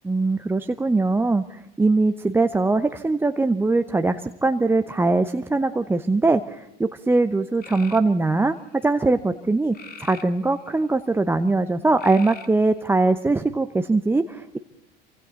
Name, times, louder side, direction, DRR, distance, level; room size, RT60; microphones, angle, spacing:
voice 1, 0.0-14.6, right 3 dB, 5° right, 8 dB, 0.8 m, -21 dB
sound 1, 7.6-8.1 9.7-10.8 12.0-12.8, left 6 dB, 30° left, 2.2 m, -42 dB
28.0 x 25.0 x 4.1 m, 0.84 s
figure-of-eight pair, 75°, 30 cm